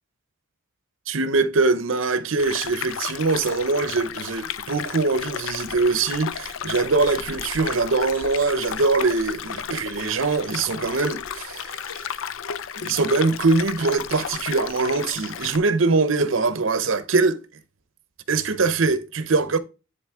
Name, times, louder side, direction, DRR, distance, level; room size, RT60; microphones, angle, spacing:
voice 1, 1.1-12.1 12.8-17.4 18.3-19.6, right 3 dB, 75° right, 0.7 m, -22 dB
sound 1, 2.4-15.6, left 8 dB, 80° left, 0.5 m, -33 dB
10.0 x 4.0 x 3.6 m
head